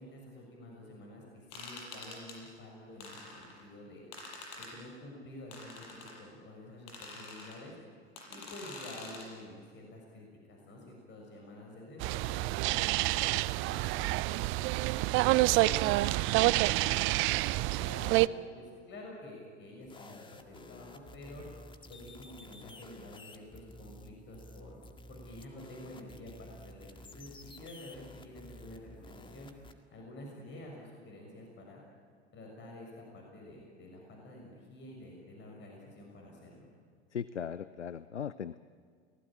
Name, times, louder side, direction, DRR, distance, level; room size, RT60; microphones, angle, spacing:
voice 1, 0.0-4.0 4.5-7.7 8.3-15.9 16.3-21.6 21.9-24.8 25.1-29.5 29.9-31.8 32.3-36.7, left 1 dB, 35° left, 0 dB, 6.6 m, -49 dB
sound 1, 1.5-2.4 3.0-3.6 4.1-4.7 5.5-6.1 6.9-7.6 8.2-9.3, left 3 dB, 60° left, 7.1 m, -46 dB
sound 2, 12.0-18.3, right 19 dB, 35° right, 0.6 m, -28 dB
sound 3, 19.8-29.7, left 1 dB, 15° left, 2.0 m, -52 dB
voice 2, 37.1-38.6, left 8 dB, 85° left, 16 dB, 0.7 m, -38 dB
30.0 x 19.5 x 8.9 m, 2.1 s
figure-of-eight pair, 85°, 34 cm